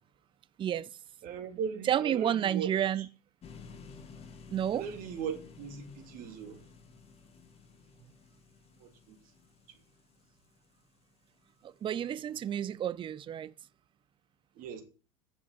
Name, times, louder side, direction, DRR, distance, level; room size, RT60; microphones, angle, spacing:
voice 1, 0.6-0.9 1.8-3.1 4.5-4.9 11.6-13.5, right 10 dB, 30° right, 0.6 m, -30 dB
voice 2, 1.2-2.7 3.0-3.1 4.7-6.7 8.8-9.2 14.6-14.8, right 7 dB, 50° right, 3.1 m, -39 dB
sound 1, 3.4-11.5, left 5 dB, 35° left, 2.5 m, -53 dB
10.5 x 7.3 x 7.5 m
hypercardioid pair, 85°, 18 cm